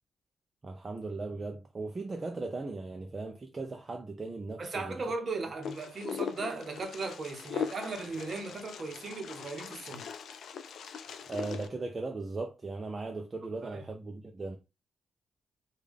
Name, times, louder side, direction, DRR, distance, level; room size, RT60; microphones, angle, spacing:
voice 1, 0.6-5.0 11.3-14.6, right 3 dB, 25° right, 0.4 m, -38 dB
voice 2, 4.6-10.1 13.6-13.8, right 3 dB, 40° right, 0.7 m, -37 dB
Wind, 5.6-11.7, left 7 dB, 75° left, 0.3 m, -40 dB
3.4 x 2.3 x 3.5 m
wide cardioid pair, 140°, 0 cm